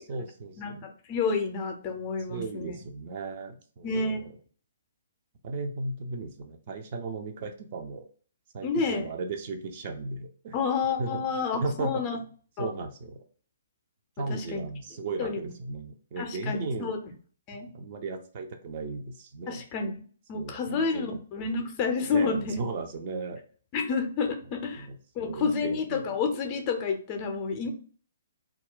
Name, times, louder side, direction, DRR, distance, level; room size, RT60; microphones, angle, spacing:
voice 1, 0.0-0.9 2.3-4.2 5.4-8.1 8.5-10.5 11.0-11.2 11.6-12.0 12.6-13.2 14.2-16.9 17.7-19.6 20.3-21.2 22.1-23.4 24.8-26.0 27.6-27.7, right 3 dB, 40° right, 5 dB, 0.5 m, -36 dB
voice 2, 0.6-2.7 3.8-4.2 8.6-9.1 10.5-12.2 12.6-12.7 14.3-14.6 15.2-15.5 16.2-17.0 17.5-17.7 19.5-20.0 20.3-22.5 23.7-24.9 25.2-27.7, left 4 dB, 30° left, 4 dB, 0.5 m, -29 dB
2.3 x 2.1 x 3.7 m, 0.43 s
figure-of-eight pair, 130°, 0 cm